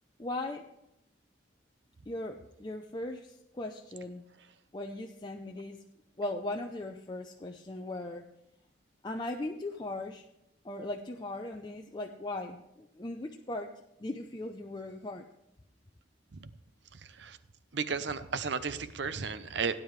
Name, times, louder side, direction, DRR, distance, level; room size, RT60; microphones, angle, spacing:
voice 1, 0.2-0.7 2.1-4.2 4.7-5.8 6.2-8.2 9.0-10.2 10.6-13.7 14.0-15.2, left 2 dB, 25° left, 2 dB, 0.5 m, -38 dB
voice 2, 16.9-17.4 17.7-19.8, right 5 dB, 65° right, 13 dB, 0.7 m, -34 dB
17.5 x 9.8 x 3.2 m, 0.82 s
head